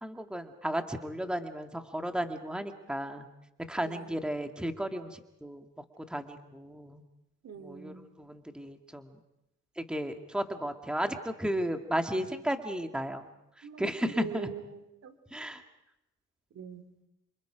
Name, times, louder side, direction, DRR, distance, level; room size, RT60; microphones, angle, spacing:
voice 1, 0.0-3.3 3.7-5.7 6.0-7.0 7.6-9.1 9.8-13.3 13.8-14.5 15.3-15.6, equal, 5° right, 6 dB, 2.0 m, -34 dB
voice 2, 3.8-4.3 7.4-8.1 13.6-15.1 16.5-16.9, right 7 dB, 60° right, 10 dB, 2.5 m, -43 dB
29.0 x 26.5 x 5.1 m, 0.87 s
cardioid pair, 90°, 30 cm